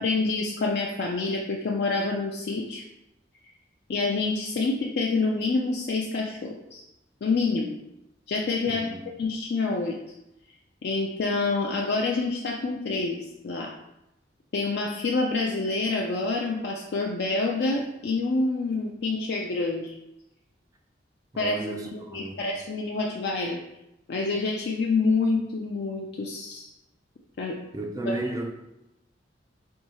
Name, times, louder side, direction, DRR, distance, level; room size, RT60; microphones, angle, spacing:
voice 1, 0.0-2.8 3.9-6.8 7.2-7.8 8.3-8.9 9.2-10.0 10.8-13.2 13.4-13.7 14.5-19.9 21.4-21.5 21.9-23.6 24.1-26.7 27.4-27.6 28.1-28.2, left 3 dB, 60° left, 0.4 m, -27 dB
voice 2, 8.7-9.0 21.3-22.4 27.7-28.5, right 2 dB, 20° right, 0.3 m, -33 dB
4.5 x 2.7 x 2.8 m
head